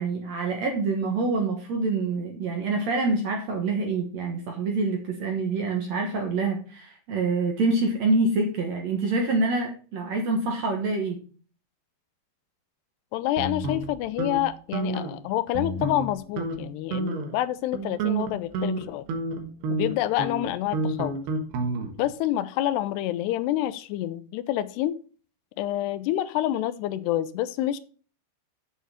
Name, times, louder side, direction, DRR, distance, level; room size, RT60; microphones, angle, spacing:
voice 1, 0.0-11.2, right 3 dB, 60° right, 2 dB, 2.0 m, -26 dB
voice 2, 13.1-19.1 19.7-21.2 22.0-25.0 25.6-27.8, left 13 dB, 90° left, 14 dB, 2.7 m, -28 dB
sound 1, 13.4-14.4 14.7-15.1 15.5-16.1 16.4-16.6 16.9-17.3 17.7-22.1, right 2 dB, 75° right, 3.4 m, -30 dB
8.0 x 6.5 x 5.7 m, 0.40 s
omnidirectional pair, 4.8 m